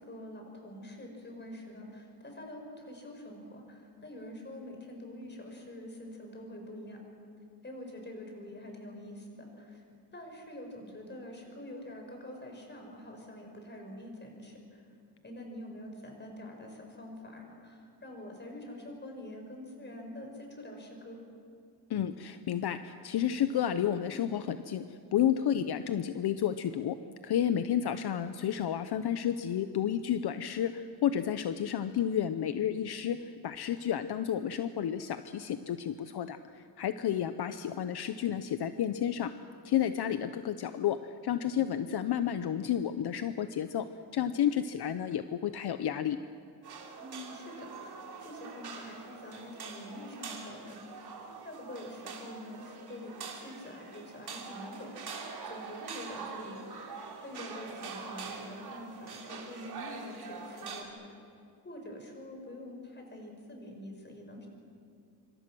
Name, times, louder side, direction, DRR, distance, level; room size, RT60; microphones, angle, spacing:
voice 1, 0.0-7.0 7.6-9.8 10.1-14.8 15.2-21.2 27.7-27.8 40.0-40.1 47.0-50.8 51.4-54.9 55.4-56.6 57.2-61.1 61.6-64.5, left 1 dB, 25° left, 2 dB, 5.4 m, -46 dB
voice 2, 21.9-27.0 27.2-39.3 39.6-43.9 44.1-46.2, left 10 dB, 65° left, 10 dB, 0.8 m, -31 dB
sound 1, 46.6-60.8, right 5 dB, 65° right, 3.3 m, -44 dB
26.5 x 25.5 x 6.2 m, 2.4 s
wide cardioid pair, 145°, 41 cm